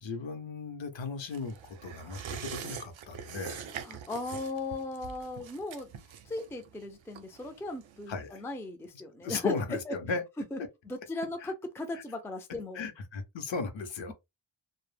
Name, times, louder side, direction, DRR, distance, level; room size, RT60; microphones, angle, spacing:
voice 1, 0.0-3.7 8.1-8.4 9.2-10.2 11.9-12.0 12.7-14.1, left 4 dB, 65° left, 0.7 m, -36 dB
sound 1, 1.3-8.3 8.6-8.7, right 8 dB, 70° right, 0.6 m, -44 dB
voice 2, 3.8-5.9 6.3-9.5 9.9-10.0 10.5-10.6 10.8-12.9, left 2 dB, 5° left, 0.3 m, -37 dB
2.1 x 2.0 x 3.2 m
wide cardioid pair, 115°, 49 cm